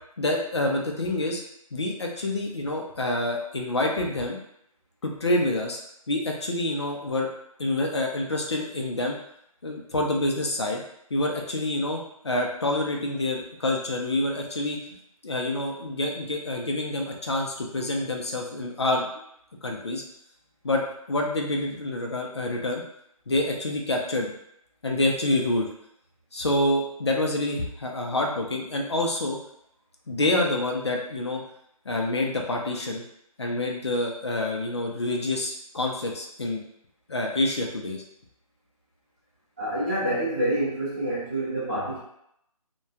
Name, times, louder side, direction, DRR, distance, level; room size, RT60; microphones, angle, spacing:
voice 1, 0.2-1.4 1.7-4.4 5.0-5.8 6.1-7.3 7.6-9.2 9.6-10.8 11.1-14.8 15.2-19.1 19.6-20.0 20.6-20.8 21.1-22.8 23.3-24.3 24.8-25.7 26.3-29.4 30.1-31.4 31.9-33.0 33.4-36.6 37.1-38.0, left 1 dB, 45° left, 0 dB, 0.5 m, -27 dB
voice 2, 39.6-42.0, right 1 dB, 15° right, -16 dB, 0.5 m, -27 dB
2.9 x 2.2 x 2.3 m, 0.76 s
hypercardioid pair, 180°, 19 cm